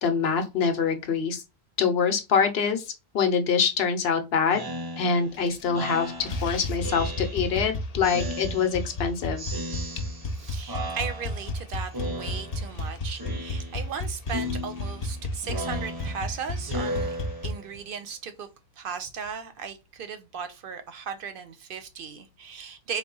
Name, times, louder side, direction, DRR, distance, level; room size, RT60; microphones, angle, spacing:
voice 1, 0.0-1.4 1.8-4.7 5.0-9.4, left 6 dB, 75° left, 0.9 m, -25 dB
Speech synthesizer, 4.5-7.7 8.0-9.0 9.4-10.4 10.7-11.6 11.9-12.8 13.2-14.0 14.3-17.8, equal, 35° right, 0.3 m, -36 dB
sound 1, 5.3-5.9 6.2-17.5, left 1 dB, 45° left, 0.6 m, -33 dB
voice 2, 10.3-18.5 18.8-23.0, right 6 dB, 65° right, 0.7 m, -37 dB
3.6 x 2.2 x 3.8 m
omnidirectional pair, 1.1 m